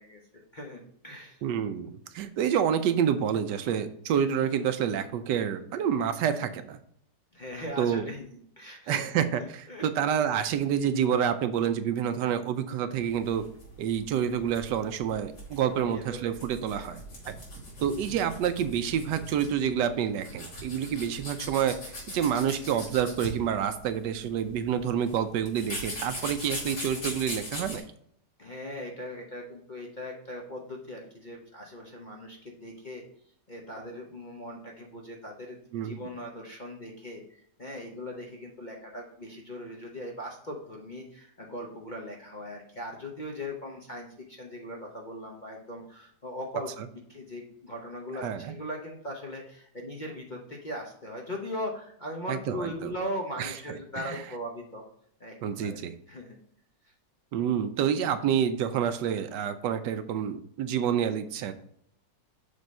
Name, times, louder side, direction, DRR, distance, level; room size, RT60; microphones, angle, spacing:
voice 1, 0.0-1.4 7.3-8.3 8.6-9.0 9.4-9.9 15.7-16.3 16.7-16.9 28.4-33.0 33.5-37.2 37.6-46.7 47.1-54.8 55.2-55.3 55.6-55.8 56.1-56.4 56.8-56.9, left 1 dB, 40° left, -2 dB, 0.7 m, -39 dB
voice 2, 1.4-6.8 7.8-8.1 8.9-13.4 13.8-17.0 17.3-17.4 17.8-27.8 35.7-36.0 48.2-48.5 52.3-52.9 53.4-53.6 54.0-54.2 55.4-55.9 57.3-61.5, right 8 dB, 75° right, 10 dB, 1.2 m, -28 dB
sound 1, 12.9-27.8, equal, 75° left, 4.0 m, -40 dB
6.7 x 3.5 x 5.3 m, 0.66 s
omnidirectional pair, 2.0 m